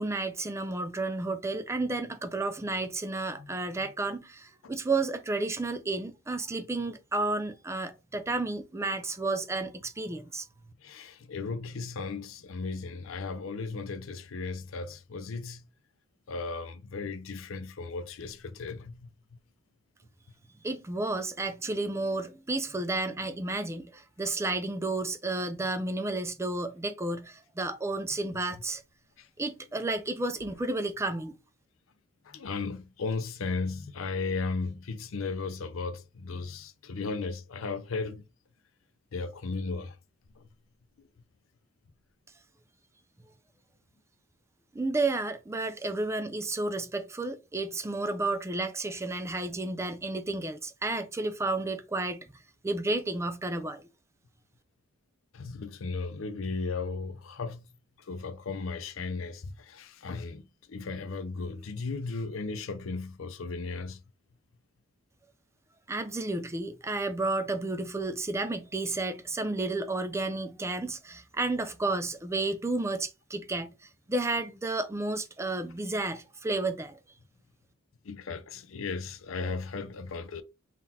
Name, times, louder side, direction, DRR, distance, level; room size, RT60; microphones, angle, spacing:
voice 1, 0.0-10.4 20.6-28.8 29.4-31.3 44.7-52.3 52.6-53.9 65.9-73.7 74.1-77.0, right 2 dB, 15° right, 0.4 m, -32 dB
voice 2, 10.8-15.6 16.3-19.1 29.2-29.3 32.3-38.2 39.1-40.0 40.4-40.5 41.0-41.1 55.3-57.7 58.1-64.0 78.0-80.4, left 4 dB, 70° left, 0.5 m, -36 dB
3.8 x 2.4 x 4.1 m
head